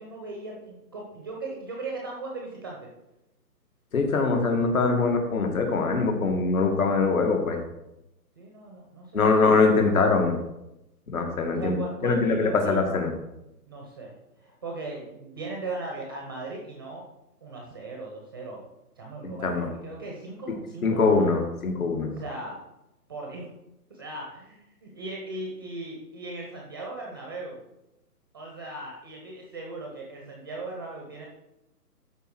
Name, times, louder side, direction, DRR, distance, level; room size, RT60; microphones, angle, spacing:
voice 1, 0.0-2.9 8.4-9.6 11.6-12.8 13.7-17.0 17.4-18.7 19.0-21.3 22.2-22.6 23.1-23.5 23.9-27.6 28.3-31.3, right 2 dB, 15° right, 0 dB, 0.7 m, -38 dB
voice 2, 3.9-7.6 9.1-10.4 11.1-11.7 12.0-13.1 19.2-19.7 20.8-22.1, left 4 dB, 60° left, 3 dB, 2.2 m, -23 dB
12.5 x 4.5 x 4.6 m, 0.89 s
hypercardioid pair, 155°, 48 cm